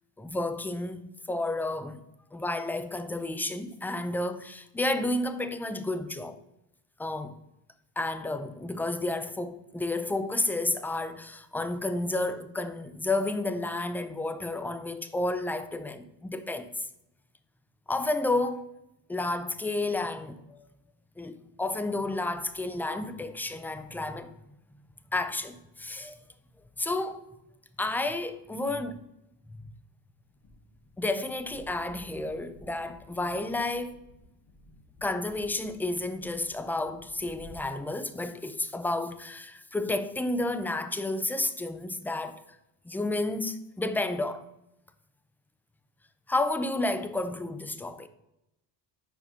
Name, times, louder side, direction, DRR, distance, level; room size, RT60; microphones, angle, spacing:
voice 1, 0.2-2.0 2.3-6.4 7.0-7.4 8.0-16.9 17.9-18.7 19.1-20.6 21.2-24.3 25.1-26.2 26.8-27.2 27.8-29.0 29.5-29.6 31.0-34.0 35.0-42.4 42.9-44.5 46.3-48.1, left 2 dB, 5° left, 0.4 m, -31 dB
sound 1, 30.2-37.6, left 2 dB, 35° left, 1.9 m, -54 dB
5.3 x 4.8 x 5.7 m
supercardioid pair, 75°, 49 cm